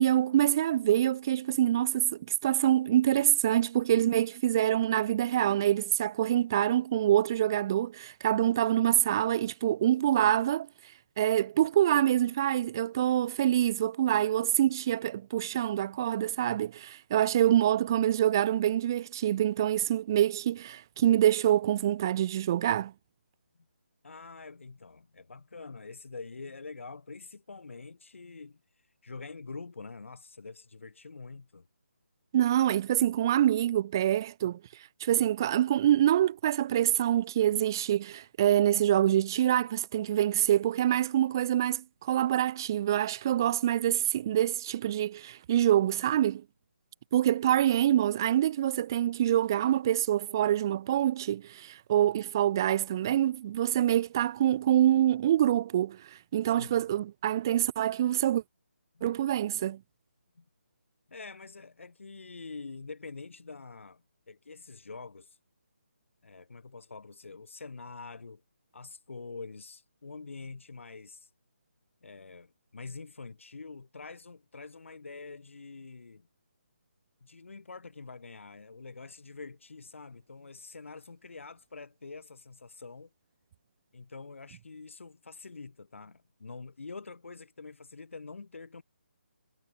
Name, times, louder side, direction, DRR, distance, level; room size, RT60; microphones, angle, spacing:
voice 1, 0.0-10.7 11.2-22.9 32.3-34.6 35.0-46.4 47.1-58.4 59.0-59.8, right 11 dB, 15° right, 0.3 m, -26 dB
voice 2, 24.0-28.6 29.0-31.7 56.6-56.8 59.0-59.2 60.4-60.5 61.1-65.4 66.2-68.4 68.7-71.3 72.0-76.3 77.2-83.1 83.9-88.8, left 4 dB, 70° left, 2.2 m, -45 dB
hypercardioid pair, 170°, 7 cm